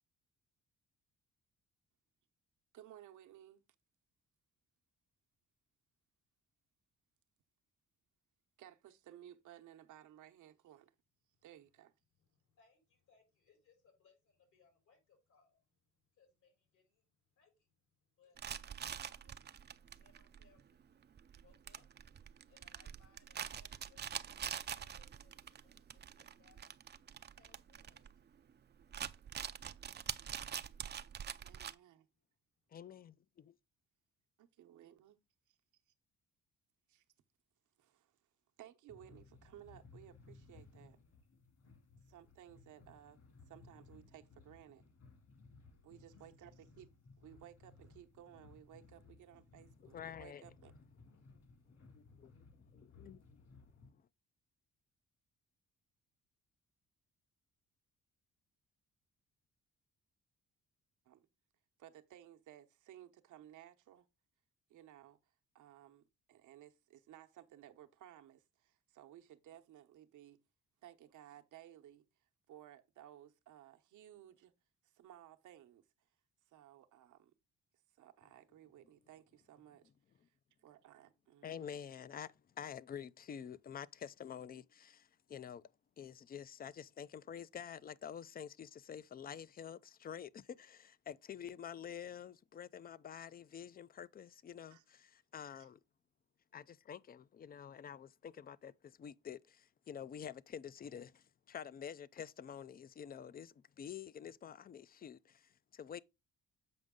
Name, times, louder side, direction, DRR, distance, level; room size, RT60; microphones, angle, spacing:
voice 1, 2.7-3.6 8.6-10.9 11.4-11.9 31.4-32.1 34.4-35.2 35.5-35.9 36.9-37.0 37.8-38.2 38.6-41.0 42.0-43.2 43.5-44.8 45.8-46.9 47.2-50.7 61.0-61.3 61.8-64.1 64.7-70.4 70.8-74.5 74.8-75.9 76.5-77.3 77.9-79.8 80.6-81.7 94.7-94.8 95.6-95.7, right 12 dB, 80° right, 1.0 m, -58 dB
voice 2, 12.2-19.5 19.8-29.6 31.0-31.2, left 5 dB, 75° left, 4.7 m, -73 dB
sound 1, 18.4-28.5 28.8-31.7, right 8 dB, 35° right, 0.5 m, -45 dB
voice 3, 32.7-33.6 49.8-50.4 51.3-51.4 51.7-53.7 53.9-54.0 81.4-85.7 86.0-95.8 96.5-106.0, left 8 dB, 30° left, 0.4 m, -49 dB
sound 2, 38.9-53.9, left 4 dB, 55° left, 2.3 m, -61 dB
7.8 x 5.1 x 3.7 m
cardioid pair, 90°, 30 cm